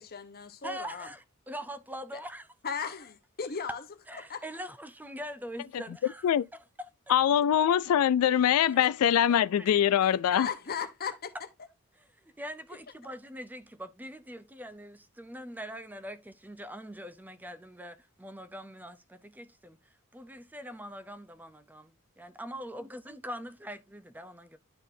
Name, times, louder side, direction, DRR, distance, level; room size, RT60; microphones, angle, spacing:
voice 1, 0.0-1.1 2.1-2.2 2.6-3.8 4.2-4.4 10.3-11.5 12.7-12.8, left 6 dB, 45° left, 1.0 m, -37 dB
voice 2, 0.6-2.5 4.1-6.6 7.1-7.2 8.7-8.9 9.6-9.7 12.2-19.8 20.1-24.6, equal, 10° right, 0.6 m, -43 dB
voice 3, 7.1-10.5, left 10 dB, 85° left, 0.3 m, -23 dB
11.5 x 4.2 x 2.7 m
head